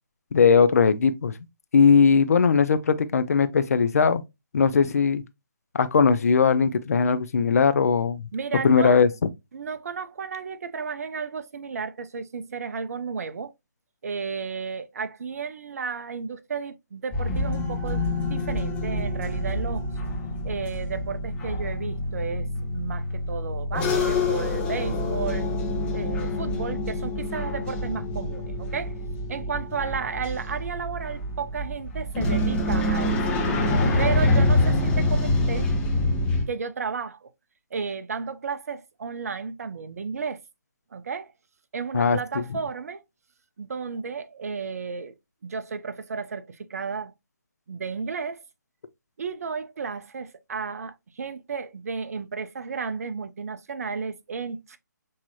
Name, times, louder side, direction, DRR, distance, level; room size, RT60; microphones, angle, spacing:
voice 1, 0.3-1.3 1.7-4.2 4.5-5.2 5.7-8.2 8.6-9.1 41.9-42.4, left 5 dB, 50° left, 0.6 m, -19 dB
voice 2, 8.3-9.0 9.5-13.5 14.0-19.9 20.4-25.5 25.9-28.9 29.3-33.2 34.0-35.7 36.5-37.3 37.7-40.4 40.9-41.3 41.7-43.0 43.6-45.1 45.4-47.1 47.7-48.4 49.2-54.8, right 5 dB, 50° right, 0.7 m, -33 dB
sound 1, 17.1-36.4, left 1 dB, 10° left, 0.9 m, -26 dB
6.4 x 2.9 x 2.6 m
figure-of-eight pair, 150°, 10 cm